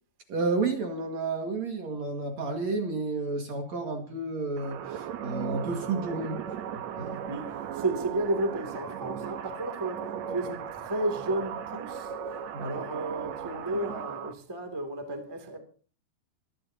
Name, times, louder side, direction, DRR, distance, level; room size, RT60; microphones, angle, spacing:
voice 1, 0.3-6.4 7.0-7.3 12.5-12.8, right 3 dB, 50° right, 2.8 m, -31 dB
sound 1, 4.6-14.3, right 8 dB, 75° right, 1.6 m, -37 dB
voice 2, 7.3-12.1 12.6-15.6, right 2 dB, 10° right, 1.8 m, -33 dB
26.5 x 11.5 x 2.9 m
omnidirectional pair, 4.5 m